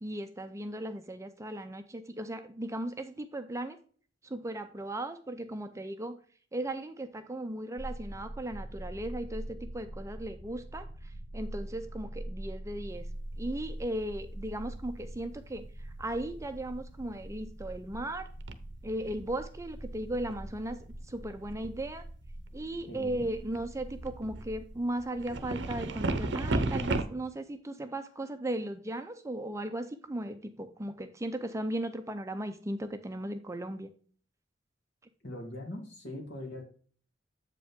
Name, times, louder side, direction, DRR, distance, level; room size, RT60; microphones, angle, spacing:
voice 1, 0.0-3.8 4.2-6.2 6.5-10.9 11.3-13.0 13.4-15.6 16.0-18.3 18.8-20.8 21.1-22.0 22.5-33.9, right 1 dB, 15° right, 8 dB, 0.6 m, -37 dB
sound 1, 7.8-24.7, right 1 dB, 90° left, 1.4 m, -44 dB
sound 2, 12.9-13.0 15.1-15.3 15.6-16.4 17.7-18.0 18.4-27.0, right 2 dB, 65° right, 0.8 m, -36 dB
voice 2, 22.9-23.3 35.2-36.6, left 1 dB, 65° left, 1 dB, 2.4 m, -41 dB
7.8 x 5.2 x 3.6 m, 0.43 s
head